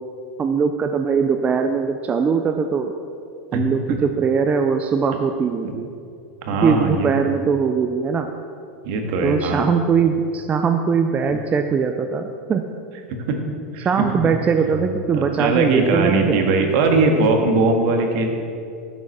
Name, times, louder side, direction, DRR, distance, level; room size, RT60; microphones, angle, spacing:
voice 1, 0.4-2.9 3.5-5.9 6.6-8.3 9.2-12.6 13.8-16.5, right 6 dB, 20° right, 6 dB, 0.5 m, -21 dB
voice 2, 6.4-7.3 8.8-9.7 13.3-13.4 13.7-14.2 14.7-14.8 15.1-18.3, right 3 dB, 55° right, 3 dB, 1.8 m, -20 dB
12.0 x 6.2 x 6.7 m, 2.5 s
supercardioid pair, 130°, 7 cm